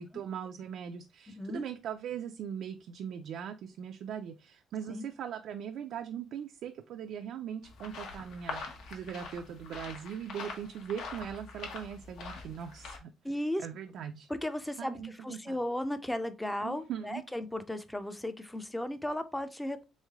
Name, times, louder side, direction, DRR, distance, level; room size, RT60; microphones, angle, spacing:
voice 1, 0.0-13.1 13.6-14.3 14.8-15.6 16.6-17.2, right 8 dB, 70° right, 0.3 m, -40 dB
voice 2, 1.3-1.7 4.9-5.0 13.2-13.7 14.3-19.8, left 1 dB, 5° left, 0.4 m, -35 dB
sound 1, 7.6-13.0, left 4 dB, 80° left, 1.0 m, -44 dB
3.6 x 3.1 x 3.5 m
cardioid pair, 160°, 0 cm